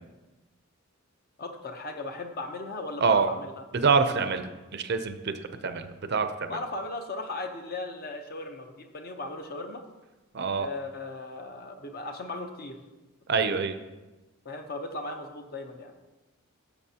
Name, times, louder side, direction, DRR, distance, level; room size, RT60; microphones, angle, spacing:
voice 1, 1.4-3.6 6.5-9.8 10.6-12.8 14.4-15.9, left 2 dB, 45° left, 5 dB, 0.8 m, -37 dB
voice 2, 3.7-6.6 10.3-10.7 13.3-13.8, right 5 dB, 50° right, 9 dB, 0.5 m, -26 dB
12.0 x 6.8 x 2.8 m, 1.1 s
head